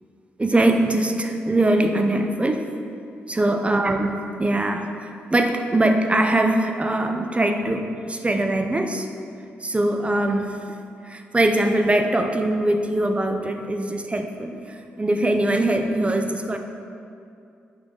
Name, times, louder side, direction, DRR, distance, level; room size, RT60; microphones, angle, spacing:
voice 1, 0.4-2.7 3.3-9.1 9.6-10.6 11.0-16.6, right 1 dB, 25° right, 5 dB, 0.6 m, -22 dB
8.6 x 4.2 x 3.8 m, 2.5 s
supercardioid pair, 45°, 5 cm